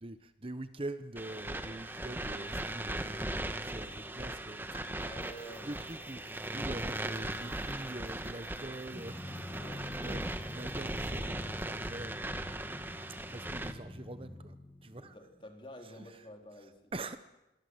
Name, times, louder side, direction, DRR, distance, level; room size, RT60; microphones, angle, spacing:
voice 1, 0.0-12.7 13.3-15.2 15.8-16.3 16.9-17.2, right 2 dB, 30° right, 10 dB, 0.9 m, -45 dB
sound 1, 1.2-13.7, right 1 dB, 10° right, 1.3 m, -38 dB
voice 2, 5.0-5.8 9.3-9.9 14.9-16.9, equal, 30° left, 3 dB, 4.0 m, -50 dB
sound 2, 5.0-11.4, right 8 dB, 70° right, 6.5 m, -66 dB
Drum, 8.9-15.4, left 1 dB, 15° left, 2.0 m, -46 dB
28.0 x 22.5 x 8.1 m, 0.97 s
head